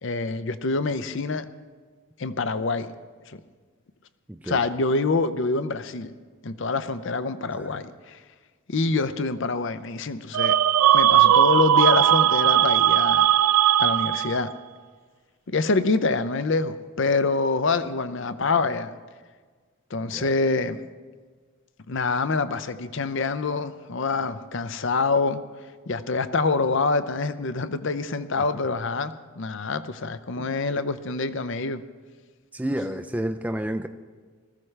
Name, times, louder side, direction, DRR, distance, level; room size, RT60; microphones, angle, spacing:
voice 1, 0.0-1.5 2.2-2.9 3.3-3.4 4.4-6.1 6.4-8.2 8.7-10.6 10.9-13.3 13.8-14.5 15.5-18.9 19.9-20.8 21.9-25.4 25.9-31.8, left 3 dB, 55° left, 12 dB, 0.6 m, -26 dB
voice 2, 4.3-4.6 7.5-7.7 20.1-20.3 28.4-28.5 30.4-30.8 32.5-33.9, right 1 dB, 5° right, 7 dB, 0.4 m, -31 dB
sound 1, 10.3-14.5, right 11 dB, 90° right, 0.4 m, -18 dB
19.5 x 14.5 x 3.3 m, 1.5 s
head